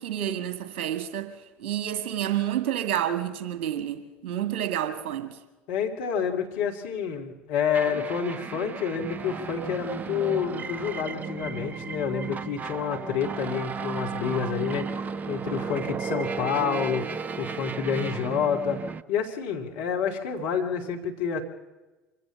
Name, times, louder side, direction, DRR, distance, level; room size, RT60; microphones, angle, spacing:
voice 1, 0.0-1.3 1.6-5.4, right 10 dB, 55° right, 2.0 m, -29 dB
voice 2, 5.7-14.9 15.3-17.0 17.4-18.8 19.1-21.4, left 7 dB, 60° left, 2.7 m, -28 dB
sound 1, 7.7-19.0, right 5 dB, 25° right, 0.6 m, -34 dB
25.0 x 16.0 x 7.1 m
figure-of-eight pair, 65°, 6 cm